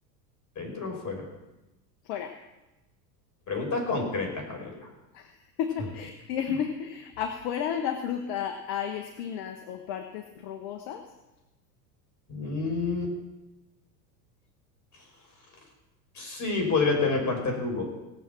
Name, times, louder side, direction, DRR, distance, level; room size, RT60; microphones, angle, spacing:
voice 1, 0.6-1.3 3.5-4.9 12.3-13.1 14.9-15.0 16.1-17.8, left 3 dB, 35° left, 2 dB, 5.9 m, -29 dB
voice 2, 5.6-11.0, left 8 dB, 60° left, 6 dB, 1.5 m, -32 dB
18.5 x 7.5 x 7.2 m, 1.0 s
hypercardioid pair, 95°, 50 cm